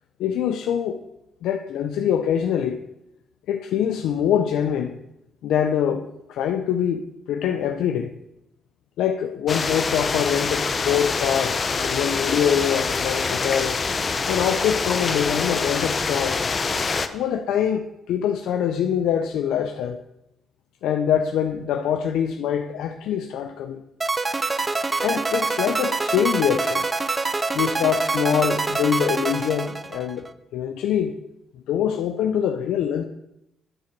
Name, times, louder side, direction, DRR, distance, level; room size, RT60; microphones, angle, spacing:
voice 1, 0.2-1.0 1.4-2.8 3.5-5.0 5.4-8.1 9.0-11.6 11.8-13.8 14.3-16.4 17.1-20.0 20.8-23.8 25.0-26.9 27.5-30.3 30.5-31.2 31.7-33.0, left 9 dB, 85° left, 0.5 m, -24 dB
sound 1, 9.5-17.1, left 4 dB, 35° left, 0.7 m, -25 dB
sound 2, 24.0-30.3, right 3 dB, 25° right, 0.6 m, -25 dB
8.9 x 7.6 x 6.0 m
cardioid pair, 90°, 0 cm